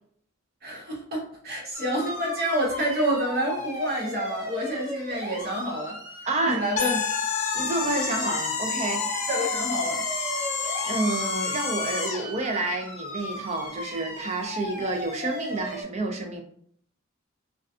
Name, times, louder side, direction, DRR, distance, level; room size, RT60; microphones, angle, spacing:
voice 1, 0.6-6.0 6.5-7.0 8.2-8.3 9.3-10.1, equal, 50° right, -2 dB, 0.8 m, -28 dB
sound 1, 1.7-15.8, equal, 15° right, 0.9 m, -37 dB
voice 2, 6.2-6.6 7.5-9.0 10.8-16.4, right 2 dB, 30° right, 3 dB, 0.4 m, -29 dB
sound 2, 6.8-12.3, left 5 dB, 35° left, 0.4 m, -29 dB
2.4 x 2.2 x 2.4 m, 0.62 s
head